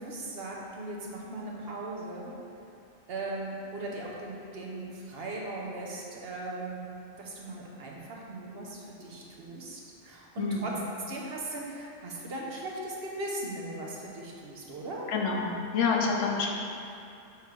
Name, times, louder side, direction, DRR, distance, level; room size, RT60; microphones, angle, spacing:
voice 1, 0.0-2.3 3.1-6.8 7.2-10.8 11.1-15.1 16.2-16.5, right 2 dB, 60° right, -2 dB, 1.0 m, -38 dB
voice 2, 15.1-16.5, left 5 dB, 85° left, 0 dB, 1.1 m, -27 dB
6.6 x 3.3 x 4.6 m, 2.6 s
omnidirectional pair, 1.2 m